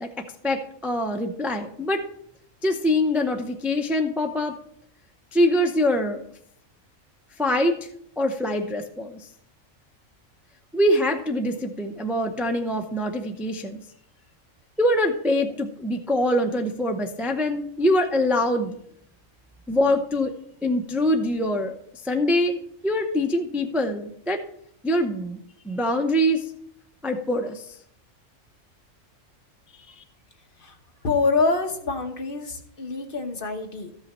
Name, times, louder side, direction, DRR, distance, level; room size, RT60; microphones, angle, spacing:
voice 1, 0.0-2.0 2.6-4.6 5.3-6.2 7.4-7.9 8.2-9.3 10.7-13.8 14.8-18.8 19.7-20.3 20.6-21.7 22.0-24.4 24.8-25.4 25.6-26.4 27.0-27.7 29.7-30.0, left 1 dB, ahead, 4 dB, 0.5 m, -24 dB
voice 2, 31.0-33.9, left 4 dB, 45° left, 4 dB, 1.1 m, -25 dB
13.5 x 5.6 x 4.3 m, 0.68 s
omnidirectional pair, 1.3 m